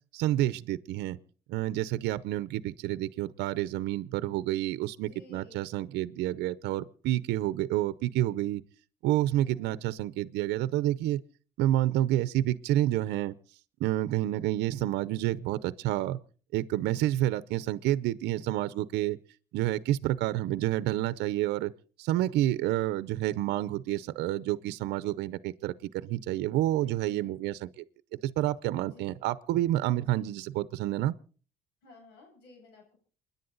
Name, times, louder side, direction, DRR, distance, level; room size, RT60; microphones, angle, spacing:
voice 1, 0.1-1.2 1.5-8.6 9.0-11.2 11.6-13.3 13.8-16.2 16.5-19.2 19.5-21.7 22.0-27.7 28.2-31.1, right 14 dB, 85° right, 0.7 m, -29 dB
voice 2, 4.9-5.7 9.4-9.8 26.8-27.4 28.8-29.2 30.0-30.2 31.8-33.0, left 2 dB, 90° left, 8.0 m, -55 dB
28.5 x 10.5 x 3.9 m
cardioid pair, 110°, 17 cm